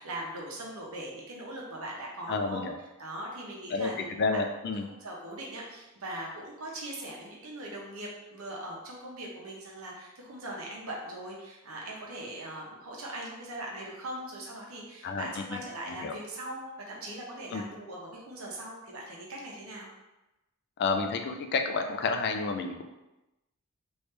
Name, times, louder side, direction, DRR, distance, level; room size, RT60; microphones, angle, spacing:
voice 1, 0.0-2.6 3.0-4.4 4.7-16.6 16.9-19.9, right 1 dB, 80° right, -3 dB, 0.9 m, -40 dB
voice 2, 2.3-2.8 3.7-3.9 4.2-4.9 15.0-15.6 16.0-16.1 17.5-17.6 20.8-22.8, left 4 dB, 55° left, 5 dB, 0.4 m, -30 dB
3.3 x 2.7 x 3.2 m, 0.99 s
head